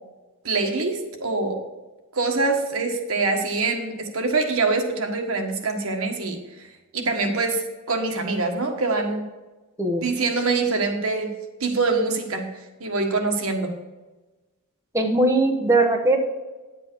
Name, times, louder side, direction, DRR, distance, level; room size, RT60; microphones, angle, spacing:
voice 1, 0.4-1.6 2.1-6.4 6.9-9.2 10.0-11.3 11.6-12.5 12.8-13.7, right 3 dB, 75° right, 4 dB, 1.5 m, -24 dB
voice 2, 14.9-16.2, right 2 dB, 15° right, 1 dB, 1.1 m, -20 dB
10.0 x 7.7 x 4.6 m, 1.2 s
head